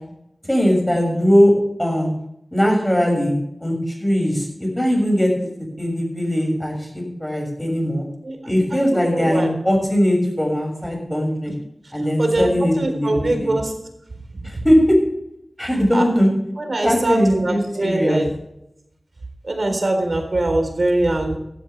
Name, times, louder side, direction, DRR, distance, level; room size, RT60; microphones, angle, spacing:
voice 1, 0.5-1.5 1.8-2.1 2.5-3.3 3.6-5.5 5.8-8.1 8.4-11.5 11.9-13.5 14.6-15.0 15.6-16.3 16.8-18.2, equal, 10° left, 0 dB, 6.5 m, -19 dB
voice 2, 8.7-9.5 12.2-12.5 12.8-13.7 15.9-16.0 16.6-18.3 19.5-21.4, right 2 dB, 60° right, 4 dB, 3.9 m, -22 dB
15.5 x 13.5 x 3.4 m, 0.80 s
wide cardioid pair, 70°, 0 cm